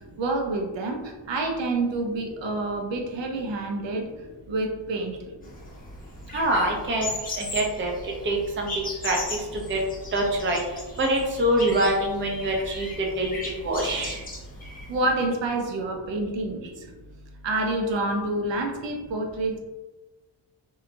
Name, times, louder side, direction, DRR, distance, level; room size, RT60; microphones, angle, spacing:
voice 1, 0.2-4.1 4.5-5.2 14.9-16.9 17.4-19.6, right 2 dB, 75° right, 2 dB, 0.6 m, -28 dB
sound 1, 5.4-15.1, left 2 dB, 20° left, 0.6 m, -38 dB
voice 2, 6.3-7.1 7.5-7.9 8.2-8.7 9.0-9.8 10.1-10.6 11.0-12.9 13.2-13.3 13.6-14.2, right 1 dB, 30° right, 0 dB, 0.5 m, -24 dB
3.0 x 2.3 x 2.5 m, 1.2 s
wide cardioid pair, 125°, 44 cm